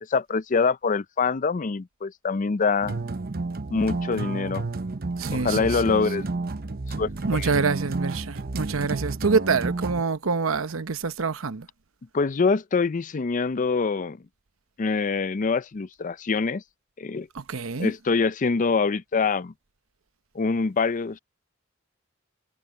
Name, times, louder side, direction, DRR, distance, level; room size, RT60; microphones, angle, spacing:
voice 1, 0.1-3.0 3.7-4.6 5.3-6.3 7.0-7.5 12.1-14.2 14.8-16.6 17.0-17.3 17.8-19.5 20.3-21.2, left 4 dB, 40° left, 0.5 m, -25 dB
sound 1, 2.8-10.0, right 3 dB, 50° right, 0.8 m, -31 dB
voice 2, 5.2-6.0 7.3-11.7 17.3-17.9, right 4 dB, 85° right, 0.9 m, -26 dB
head